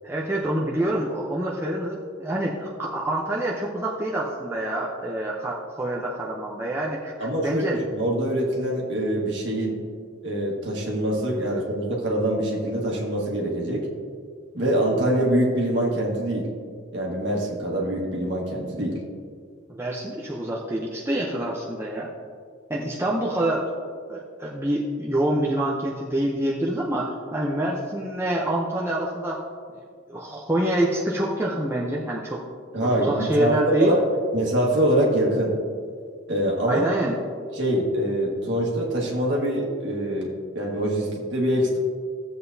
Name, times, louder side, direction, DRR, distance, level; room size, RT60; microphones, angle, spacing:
voice 1, 0.0-7.1 7.4-7.8 19.7-22.1 22.7-23.7 24.1-29.4 30.1-32.4 32.8-33.9 36.7-37.2, right 1 dB, 10° right, -4 dB, 0.7 m, -26 dB
voice 2, 7.2-9.8 10.2-13.9 14.5-16.5 16.9-19.0 32.7-34.0 34.3-35.6 36.3-36.9 37.5-40.3 40.6-41.8, right 1 dB, 60° right, -2 dB, 1.8 m, -24 dB
15.0 x 7.8 x 2.7 m, 2.1 s
head